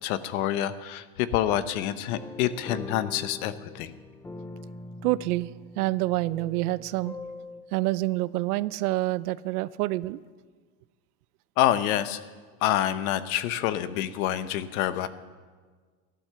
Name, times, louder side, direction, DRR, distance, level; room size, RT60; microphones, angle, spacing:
voice 1, 0.0-3.9 11.6-12.2 12.6-15.1, left 12 dB, 70° left, 12 dB, 1.1 m, -27 dB
sound 1, 2.1-7.6, left 2 dB, 5° left, 0.4 m, -42 dB
voice 2, 5.0-5.5 5.8-7.1 7.7-10.2, right 18 dB, 80° right, 18 dB, 0.6 m, -27 dB
15.0 x 11.5 x 6.9 m, 1.5 s
supercardioid pair, 145°, 44 cm